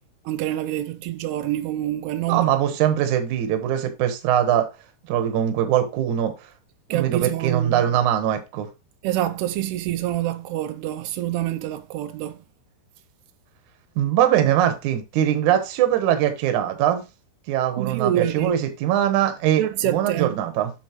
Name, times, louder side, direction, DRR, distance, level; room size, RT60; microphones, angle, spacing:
voice 1, 0.3-2.5 6.9-7.9 9.0-12.4 17.8-18.6 19.6-20.4, right 13 dB, 85° right, 2.6 m, -26 dB
voice 2, 2.3-4.7 5.1-6.3 6.9-8.7 14.0-17.0 17.5-20.7, right 11 dB, 65° right, 2.2 m, -22 dB
8.5 x 6.4 x 3.0 m
omnidirectional pair, 4.7 m